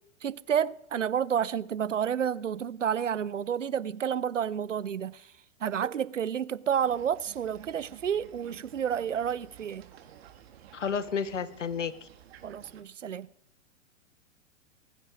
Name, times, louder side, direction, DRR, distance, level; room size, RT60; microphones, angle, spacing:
voice 1, 0.2-5.3 5.6-9.9 12.4-13.3, right 8 dB, 85° right, 0.6 m, -30 dB
sound 1, 6.8-12.8, right 10 dB, 55° right, 2.1 m, -53 dB
voice 2, 10.7-12.1, left 6 dB, 75° left, 1.3 m, -31 dB
20.0 x 9.0 x 5.2 m
figure-of-eight pair, 105°, 37 cm